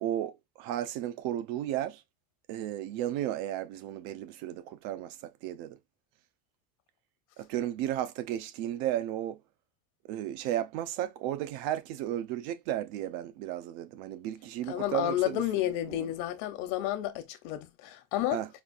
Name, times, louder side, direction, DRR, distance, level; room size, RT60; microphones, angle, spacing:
voice 1, 0.0-2.0 2.5-5.8 7.4-9.4 10.1-15.4 15.9-16.1 18.3-18.5, right 12 dB, 75° right, 0.9 m, -34 dB
voice 2, 14.7-18.4, left 13 dB, 65° left, 1.0 m, -31 dB
5.4 x 2.5 x 2.5 m
cardioid pair, 165°, 44 cm